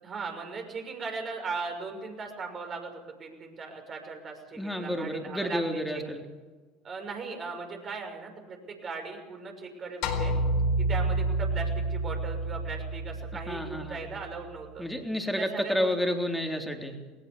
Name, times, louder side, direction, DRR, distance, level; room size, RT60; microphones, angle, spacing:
voice 1, 0.0-6.1 6.8-10.3 10.8-14.8 15.4-15.9, right 4 dB, 35° right, 3 dB, 6.3 m, -38 dB
voice 2, 4.6-6.2 13.5-14.0 14.8-17.0, equal, ahead, 3 dB, 3.8 m, -30 dB
sound 1, 10.0-14.4, right 2 dB, 60° left, 4.3 m, -29 dB
21.0 x 19.0 x 7.1 m, 1.3 s
hypercardioid pair, 75°, 0 cm